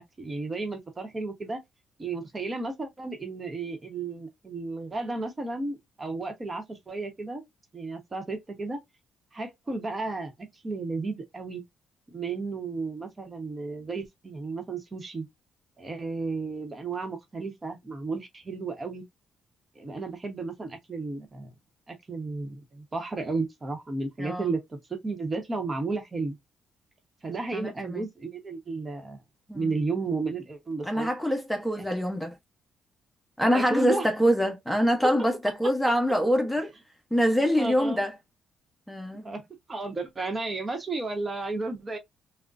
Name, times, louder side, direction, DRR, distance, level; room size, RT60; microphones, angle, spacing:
voice 1, 0.0-1.6 2.0-7.4 7.7-8.8 9.3-11.6 12.1-15.3 15.8-19.0 19.7-21.5 21.9-26.3 27.2-29.2 29.5-31.1 31.8-31.9 33.5-34.1 37.6-38.0 39.2-42.0, right 3 dB, 30° right, 0.9 m, -33 dB
voice 2, 27.5-28.0 29.5-29.8 30.8-32.3 33.4-36.7 37.1-38.1 38.9-39.3, equal, 5° left, 1.0 m, -25 dB
3.8 x 2.1 x 2.5 m
cardioid pair, 90°, 0 cm